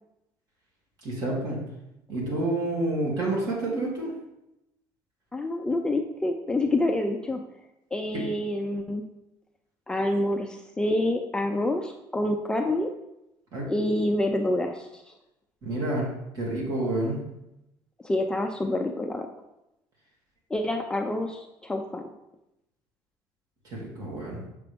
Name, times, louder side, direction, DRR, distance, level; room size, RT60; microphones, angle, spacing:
voice 1, 1.0-1.6 2.1-4.1 8.1-8.2 13.5-13.7 15.6-17.2 23.6-24.4, right 2 dB, 45° right, -4 dB, 2.7 m, -29 dB
voice 2, 5.3-7.4 7.9-9.0 9.9-12.9 13.7-15.1 18.0-19.3 20.5-22.0, left 1 dB, 10° left, 3 dB, 0.4 m, -27 dB
7.0 x 5.8 x 3.6 m, 0.89 s
cardioid pair, 155°, 9 cm